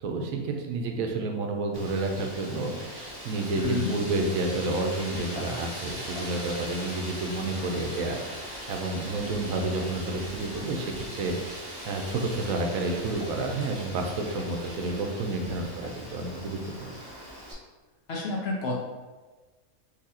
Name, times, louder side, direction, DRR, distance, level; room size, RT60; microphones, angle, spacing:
voice 1, 0.0-16.9, right 2 dB, 75° right, 3 dB, 1.0 m, -30 dB
Wind, 1.7-17.5, equal, 40° right, 0.3 m, -40 dB
voice 2, 3.5-3.9 18.1-18.7, left 3 dB, 65° left, -2 dB, 0.7 m, -29 dB
4.0 x 2.8 x 2.7 m, 1.3 s
omnidirectional pair, 1.5 m